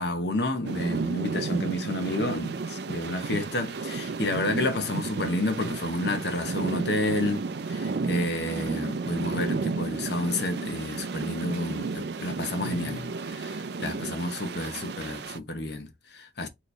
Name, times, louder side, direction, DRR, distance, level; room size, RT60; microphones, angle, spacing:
voice 1, 0.0-16.5, left 1 dB, 55° left, 0.9 m, -30 dB
sound 1, 0.6-15.4, right 4 dB, 55° right, 0.4 m, -32 dB
4.2 x 3.1 x 3.3 m
head